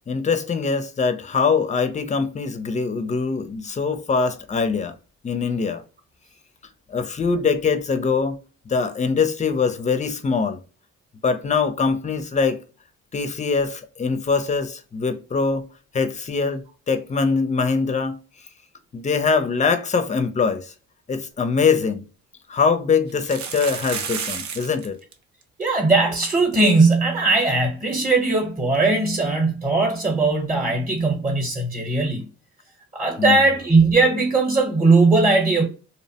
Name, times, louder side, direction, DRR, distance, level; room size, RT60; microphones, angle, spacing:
voice 1, 0.1-4.9 5.2-5.8 6.9-8.4 8.7-10.6 11.2-12.6 13.1-15.7 15.9-18.2 18.9-20.7 21.1-22.0 22.5-25.0 33.2-33.4, left 5 dB, 25° left, 0.4 m, -23 dB
sound 1, 21.5-21.6 21.9-22.0 23.1-24.9 25.1-25.2 25.4-25.7 26.2-26.3 26.6-26.7 28.7-28.8, right 6 dB, 70° right, 0.6 m, -31 dB
voice 2, 25.6-32.2 32.9-35.6, right 3 dB, 20° right, 0.9 m, -19 dB
2.8 x 2.0 x 2.7 m
cardioid pair, 90°, 30 cm